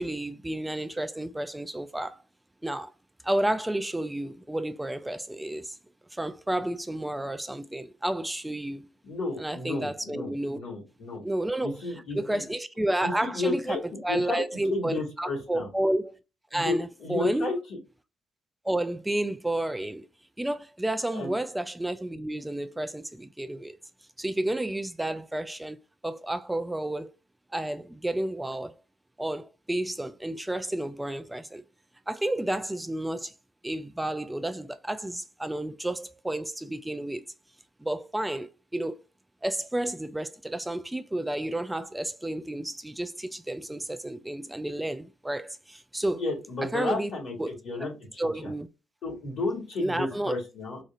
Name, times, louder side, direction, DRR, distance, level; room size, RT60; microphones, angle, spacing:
voice 1, 0.0-2.2 2.6-2.9 3.2-5.8 6.1-8.9 9.4-10.6 11.2-16.2 16.5-17.5 18.6-20.1 20.4-23.8 24.2-25.8 26.0-27.1 27.5-28.7 29.2-31.6 32.1-33.3 33.6-37.3 37.8-39.0 39.4-46.2 46.7-47.1 47.4-47.5 48.2-48.7 49.8-50.4, right 1 dB, 10° right, 0.3 m, -31 dB
voice 2, 9.0-11.2 11.6-12.4 13.0-13.8 14.1-14.4 14.7-15.7 16.5-17.6 21.1-21.3 46.1-47.3 47.6-48.5 49.0-50.8, left 2 dB, 60° left, 1.8 m, -32 dB
4.1 x 2.4 x 2.4 m
hypercardioid pair, 50°, 0 cm